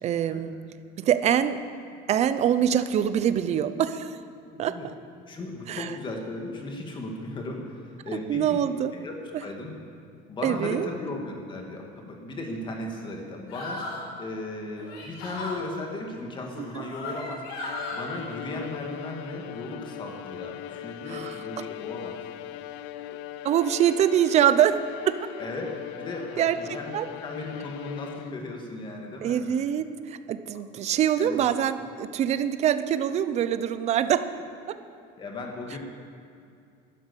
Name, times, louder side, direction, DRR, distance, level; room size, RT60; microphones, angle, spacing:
voice 1, 0.0-0.5 1.0-1.6 2.1-4.2 4.6-4.9 5.7-5.9 8.3-8.9 10.4-10.9 16.6-16.8 21.1-21.4 23.4-25.1 26.4-26.6 26.9-27.1 29.2-34.3, right 10 dB, 35° right, 12 dB, 0.6 m, -24 dB
voice 2, 4.5-4.9 5.3-8.6 8.9-9.1 9.4-9.7 10.3-13.9 14.2-17.4 17.9-22.1 25.4-25.7 26.0-26.9 27.2-29.5 31.2-31.5 35.2-35.8, left 2 dB, 25° left, 1 dB, 2.1 m, -36 dB
sound 1, 13.5-14.1 14.8-15.6 16.5-18.0, left 2 dB, 85° left, 4.7 m, -36 dB
Bowed string instrument, 17.6-28.6, left 12 dB, 70° left, 0.6 m, -39 dB
12.5 x 11.0 x 8.3 m, 2.4 s
cardioid pair, 165°, 19 cm